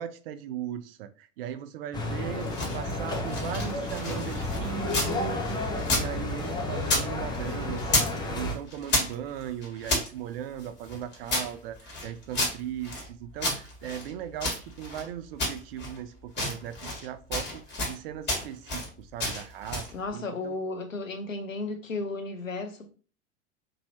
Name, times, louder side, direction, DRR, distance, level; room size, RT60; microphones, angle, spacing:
voice 1, 0.0-20.6, right 10 dB, 50° right, 0.5 m, -38 dB
sound 1, 1.9-8.5, left 2 dB, 10° left, 0.5 m, -31 dB
sound 2, 2.3-5.2 5.4-7.1 7.3-8.2 8.4-10.1 10.6-13.1 13.4-15.1 15.4-16.0 16.3-17.1 17.3-18.0 18.3-18.9 19.2-19.9, left 2 dB, 25° left, 1.5 m, -31 dB
voice 2, 19.9-22.9, left 3 dB, 85° left, 0.7 m, -34 dB
3.1 x 2.7 x 2.7 m
figure-of-eight pair, 85°, 39 cm